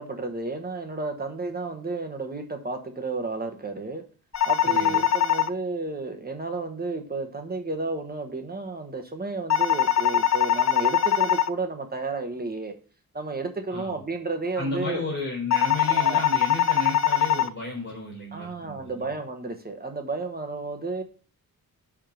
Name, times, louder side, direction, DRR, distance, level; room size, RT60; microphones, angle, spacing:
voice 1, 0.0-4.0 4.4-12.7 13.1-15.1 15.9-16.2 18.3-21.0, right 3 dB, 25° right, 5 dB, 1.2 m, -32 dB
sound 1, 4.3-5.5 9.5-11.5 15.5-17.5, left 10 dB, 50° left, 0.4 m, -22 dB
voice 2, 4.6-5.0 13.7-14.0 14.5-19.1, left 3 dB, 30° left, -4 dB, 4.0 m, -33 dB
10.5 x 3.7 x 5.2 m, 0.40 s
wide cardioid pair, 155°, 36 cm